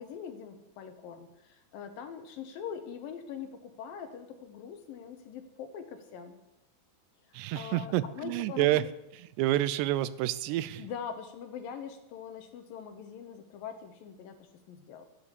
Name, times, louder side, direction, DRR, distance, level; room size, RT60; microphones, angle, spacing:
voice 1, 0.0-6.4 7.3-8.9 10.8-15.1, left 7 dB, 70° left, 7 dB, 2.6 m, -43 dB
voice 2, 7.3-8.8 9.1-10.9, right 14 dB, 90° right, 17 dB, 2.8 m, -29 dB
12.5 x 10.5 x 8.4 m, 0.91 s
omnidirectional pair, 4.7 m